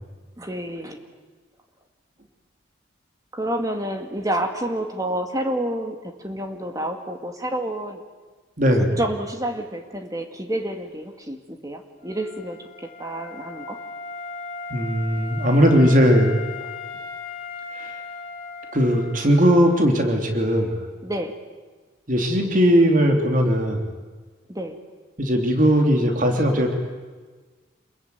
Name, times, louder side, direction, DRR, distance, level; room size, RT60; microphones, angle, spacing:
voice 1, 0.4-1.0 3.3-8.0 8.8-13.8 21.0-21.3 24.5-24.8, right 1 dB, 20° right, 5 dB, 2.1 m, -29 dB
voice 2, 8.6-9.0 14.7-16.3 17.8-17.9 18.7-20.8 22.1-23.8 25.2-26.8, equal, 40° right, 3 dB, 3.2 m, -18 dB
Wind instrument woodwind instrument, 12.0-19.8, left 4 dB, 25° left, 5.4 m, -37 dB
27.5 x 22.0 x 9.5 m, 1.4 s
head